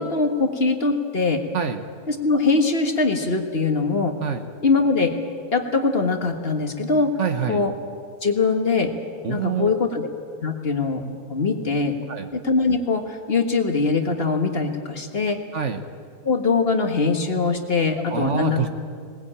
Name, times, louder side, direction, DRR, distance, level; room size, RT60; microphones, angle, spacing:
voice 1, 0.0-1.4 2.1-4.2 4.6-5.1 5.5-7.1 7.5-7.7 8.2-8.9 9.3-10.1 10.4-11.0 11.3-12.0 12.3-15.4 16.2-18.6, left 4 dB, 40° left, 5 dB, 1.7 m, -22 dB
voice 2, 7.2-7.6 9.2-9.8 12.1-12.3 15.5-15.8 18.1-18.7, right 7 dB, 55° right, 8 dB, 1.3 m, -26 dB
20.5 x 19.5 x 8.8 m, 2.2 s
omnidirectional pair, 1.6 m